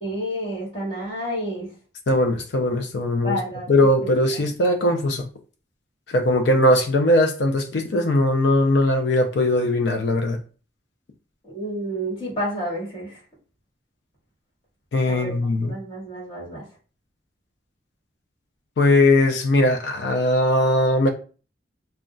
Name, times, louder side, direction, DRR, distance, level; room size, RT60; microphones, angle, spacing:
voice 1, 0.0-1.7 3.2-4.1 11.4-13.2 15.1-15.3 15.7-16.6, equal, 30° left, 1.5 m, -30 dB
voice 2, 2.1-3.4 3.7-5.3 6.1-10.4 14.9-15.7 18.8-21.1, left 1 dB, 75° left, 0.5 m, -20 dB
3.7 x 2.2 x 2.3 m
head